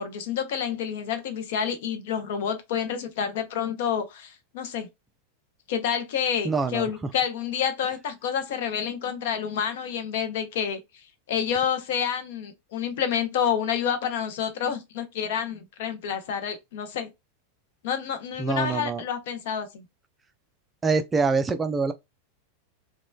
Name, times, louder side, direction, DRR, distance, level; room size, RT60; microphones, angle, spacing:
voice 1, 0.0-4.9 5.7-10.8 11.3-17.1 17.8-19.9, left 8 dB, 55° left, 0.6 m, -28 dB
voice 2, 6.4-6.9 18.4-19.0 20.8-21.9, right 4 dB, 15° right, 0.3 m, -25 dB
3.0 x 2.2 x 2.2 m
figure-of-eight pair, 90°, 0 cm